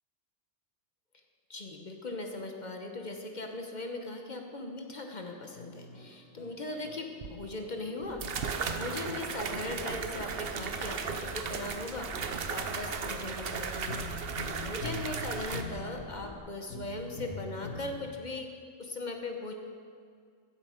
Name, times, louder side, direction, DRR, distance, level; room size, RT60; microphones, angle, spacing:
voice 1, 1.5-12.1 12.4-18.5 18.8-19.5, left 2 dB, 45° left, 3 dB, 1.1 m, -39 dB
sound 1, 5.5-9.7 10.1-18.0, left 1 dB, 70° left, 1.7 m, -45 dB
sound 2, 7.2-7.3 8.2-15.6, right 6 dB, 60° right, 0.9 m, -36 dB
sound 3, 8.0-16.4, left 2 dB, 20° left, 1.0 m, -47 dB
16.0 x 8.2 x 5.0 m, 2.2 s
omnidirectional pair, 1.2 m